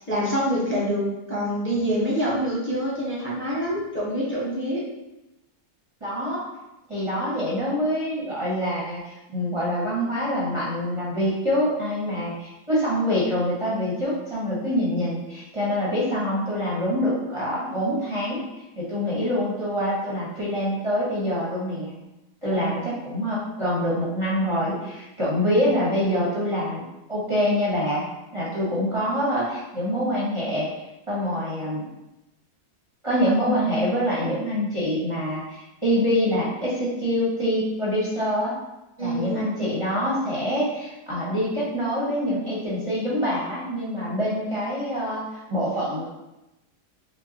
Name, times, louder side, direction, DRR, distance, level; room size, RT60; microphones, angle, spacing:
voice 1, 0.1-4.9 22.5-22.7 39.0-39.5, equal, 10° left, -7 dB, 0.6 m, -26 dB
voice 2, 6.0-6.4 6.9-18.4 18.8-21.9 22.4-26.8 27.1-28.1 28.3-31.9 33.0-38.5 39.0-46.1, equal, 30° right, -8 dB, 0.6 m, -25 dB
5.2 x 2.0 x 2.8 m, 0.96 s
omnidirectional pair, 1.7 m